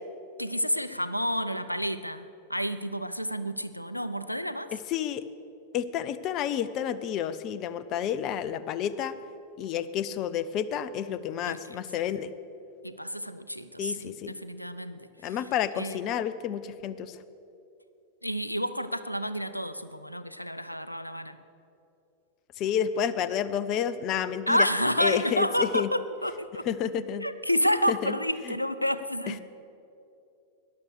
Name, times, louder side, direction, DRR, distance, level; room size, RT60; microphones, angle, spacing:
voice 1, 0.4-4.7 11.5-11.8 12.8-15.1 15.8-16.0 18.2-21.4 24.5-26.6 27.2-29.4, equal, 90° left, 13 dB, 0.5 m, -29 dB
voice 2, 4.7-5.2 5.7-9.2 9.6-12.3 13.8-14.4 15.2-17.2 22.6-24.7 25.0-25.9 26.7-27.3 27.9-28.2 28.4-28.6 29.3-29.4, left 9 dB, 40° left, 15 dB, 0.6 m, -30 dB
14.0 x 10.5 x 6.7 m, 2.7 s
figure-of-eight pair, 90°, 0 cm